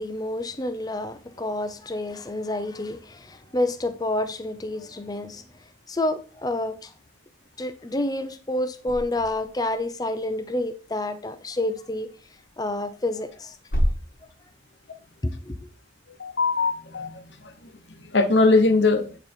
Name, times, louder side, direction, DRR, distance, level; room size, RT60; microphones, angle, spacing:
voice 1, 0.0-5.4 5.9-6.9 7.6-12.1 12.6-13.6 15.2-15.6, left 1 dB, 20° left, 0.5 m, -29 dB
sound 1, 8.8-10.1 11.4-11.5 12.5-14.4, equal, 50° left, 1.2 m, -29 dB
voice 2, 16.2-17.5 18.1-19.2, left 3 dB, 75° left, 1.0 m, -21 dB
8.7 x 4.0 x 4.4 m
head